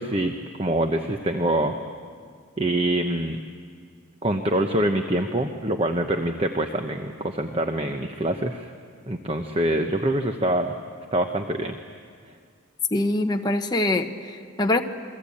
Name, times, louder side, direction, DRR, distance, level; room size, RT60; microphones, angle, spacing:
voice 1, 0.0-1.7 2.6-3.4 4.2-8.7 9.1-10.7 11.1-11.8, right 1 dB, 25° right, 5 dB, 0.9 m, -25 dB
voice 2, 12.9-14.8, left 2 dB, 20° left, 3 dB, 1.0 m, -24 dB
28.0 x 23.0 x 8.6 m, 2.1 s
head